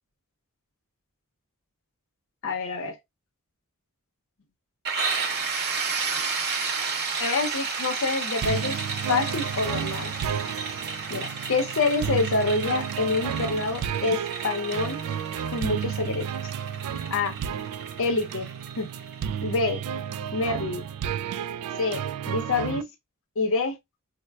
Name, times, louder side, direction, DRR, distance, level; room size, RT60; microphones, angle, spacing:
voice 1, 2.4-2.9 7.2-8.8 9.1-10.1 11.1-15.0 15.5-16.3 17.1-17.3 18.0-18.5 18.8-18.9 19.4-19.8 20.3-20.9 21.8-22.9 23.4-23.8, left 3 dB, 65° left, 0.7 m, -27 dB
sound 1, 4.8-20.4, right 4 dB, 50° right, 0.8 m, -32 dB
sound 2, 8.4-22.8, right 8 dB, 80° right, 0.3 m, -32 dB
4.2 x 2.1 x 2.3 m
head